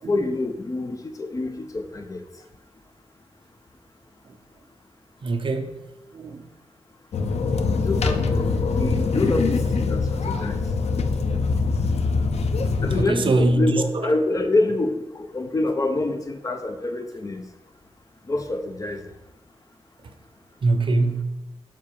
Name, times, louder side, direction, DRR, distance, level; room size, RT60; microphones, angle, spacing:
voice 1, 0.1-2.5 7.8-10.7 12.8-17.5 18.2-19.1, left 2 dB, 30° left, 7 dB, 0.7 m, -26 dB
voice 2, 5.2-5.8 6.1-6.5 13.0-14.1 20.6-21.2, right 2 dB, 50° right, 6 dB, 0.8 m, -23 dB
sound 1, 7.1-13.0, left 4 dB, 75° left, 0.7 m, -23 dB
7.5 x 5.4 x 7.1 m, 1.1 s
wide cardioid pair, 165°, 11 cm